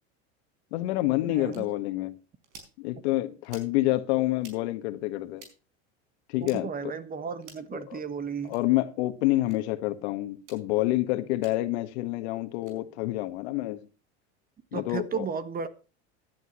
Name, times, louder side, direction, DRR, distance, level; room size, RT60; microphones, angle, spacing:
voice 1, 0.7-2.1 2.8-5.4 6.3-6.9 7.7-8.0 8.5-13.8 14.7-15.2, left 17 dB, 75° left, 1.5 m, -28 dB
voice 2, 1.3-1.7 6.4-8.5 14.7-15.7, right 6 dB, 25° right, 1.4 m, -34 dB
sound 1, 1.5-1.6 2.4-2.7 3.4-3.7 4.4-4.6 5.4-5.5 6.4-6.6 7.4-7.7 8.4-8.6 9.4-9.6 10.4-10.6 11.4-11.5 12.5-12.8, right 4 dB, 90° right, 5.0 m, -50 dB
15.0 x 11.0 x 3.0 m
supercardioid pair, 115°, 33 cm